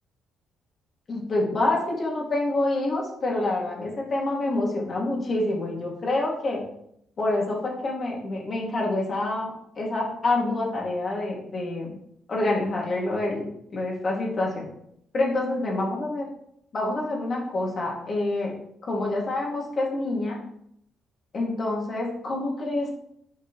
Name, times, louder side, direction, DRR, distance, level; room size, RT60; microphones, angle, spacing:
voice 1, 1.1-6.6 7.2-11.9 12.3-13.4 13.7-14.7 15.1-16.2 16.7-18.5 18.8-20.4 21.3-22.9, left 2 dB, 40° left, -2 dB, 2.9 m, -27 dB
10.5 x 5.3 x 3.4 m, 0.73 s
cardioid pair, 110°, 0 cm